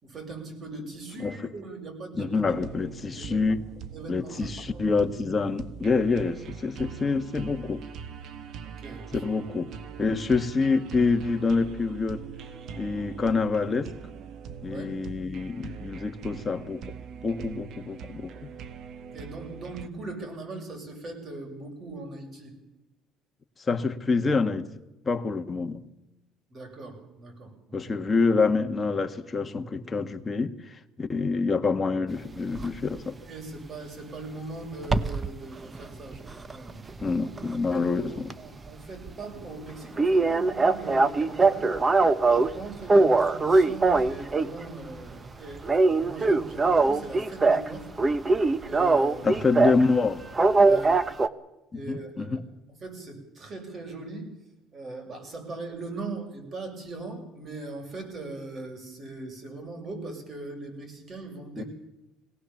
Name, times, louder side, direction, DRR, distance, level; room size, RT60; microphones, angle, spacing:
voice 1, 0.0-2.4 3.1-3.5 3.9-4.8 8.6-9.1 14.7-14.9 19.1-22.5 26.5-27.8 33.3-36.8 37.7-41.7 42.3-47.9 48.2-48.3 48.6-49.4 50.6-50.9 51.7-52.4 52.8-54.3 54.7-61.7, right 3 dB, 40° right, 6.8 m, -40 dB
voice 2, 2.2-3.6 4.1-7.8 9.1-9.7 10.0-12.2 12.8-13.9 14.6-16.9 17.2-18.3 23.6-24.7 25.0-25.8 27.7-33.2 37.0-38.3 49.2-50.2 51.7-52.4 61.6-61.7, left 4 dB, 25° left, 1.5 m, -26 dB
sound 1, 2.4-19.9, right 7 dB, 60° right, 1.7 m, -42 dB
sound 2, 32.5-32.7 34.8-35.3 35.7-37.9 38.2-38.3 38.7-38.8 39.1-39.2 39.4-39.5 40.0-42.5 42.9-44.6 45.0-45.3 45.6-47.7 48.0-49.8 50.3-51.3, right 3 dB, 25° right, 1.0 m, -22 dB
22.0 x 18.0 x 7.3 m
cardioid pair, 110°, 0 cm